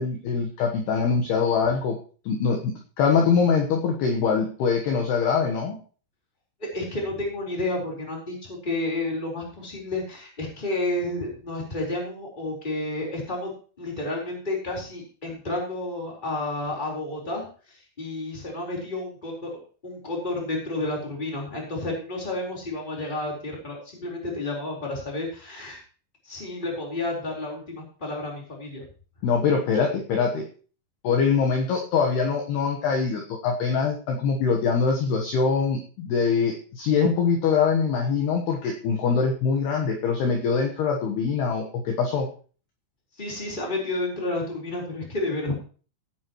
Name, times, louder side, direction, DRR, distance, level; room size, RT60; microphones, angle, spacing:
voice 1, 0.0-2.0 2.2-5.8 29.2-30.5 31.0-42.3, left 5 dB, 70° left, 1 dB, 2.8 m, -23 dB
voice 2, 6.6-25.8 26.2-28.8 43.2-45.5, left 2 dB, 10° left, -2 dB, 3.3 m, -31 dB
16.5 x 9.5 x 3.1 m, 0.39 s
omnidirectional pair, 5.8 m